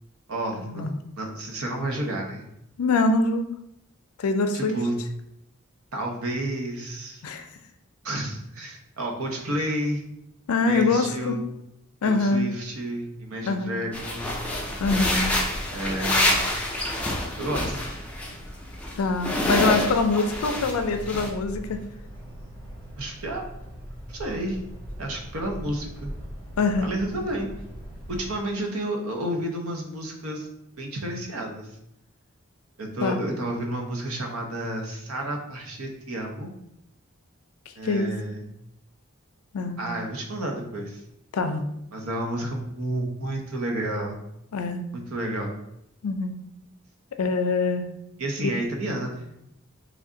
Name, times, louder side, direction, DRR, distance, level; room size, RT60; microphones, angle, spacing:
voice 1, 0.3-2.4 4.5-5.0 5.9-7.2 8.0-10.0 10.6-11.4 12.0-14.4 15.7-16.5 17.4-17.9 23.0-23.4 24.1-24.6 25.0-26.1 26.8-27.5 28.1-30.5 30.8-31.7 32.8-36.5 37.8-38.4 39.8-41.0 41.9-44.2 44.9-45.5 48.2-49.2, right 1 dB, 85° right, 2 dB, 0.7 m, -31 dB
voice 2, 2.8-3.4 4.2-4.8 7.2-7.5 10.5-11.4 12.0-12.5 13.4-13.7 14.8-15.3 18.9-21.8 26.6-26.9 33.0-33.2 37.8-38.1 39.5-39.8 41.3-41.6 44.5-44.8 46.0-46.4 47.2-47.9, left 3 dB, 90° left, 7 dB, 0.4 m, -24 dB
sound 1, 13.9-18.3 18.6-20.8 21.1-21.3, left 1 dB, 5° left, 0.4 m, -27 dB
sound 2, 14.2-28.3, equal, 50° right, 1.4 m, -40 dB
3.3 x 2.5 x 3.7 m, 0.81 s
head